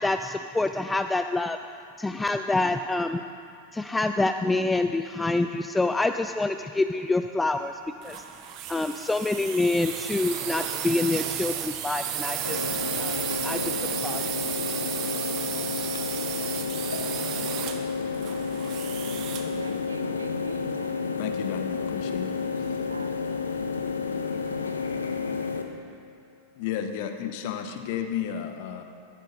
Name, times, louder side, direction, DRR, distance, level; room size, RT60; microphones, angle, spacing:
voice 1, 0.0-1.6 2.0-3.2 3.7-8.2 8.7-13.1 13.4-14.2, left 2 dB, 10° left, 8 dB, 0.3 m, -27 dB
sound 1, 8.0-19.6, right 10 dB, 40° right, 0.8 m, -33 dB
sound 2, 12.4-25.6, left 5 dB, 75° left, 0.8 m, -31 dB
voice 2, 19.5-21.2 22.5-23.5 24.4-24.9, right 4 dB, 75° right, 9 dB, 0.6 m, -42 dB
voice 3, 21.2-22.8 26.5-28.8, left 9 dB, 50° left, 7 dB, 0.8 m, -33 dB
15.0 x 14.0 x 2.7 m, 2.4 s
figure-of-eight pair, 90°, 0 cm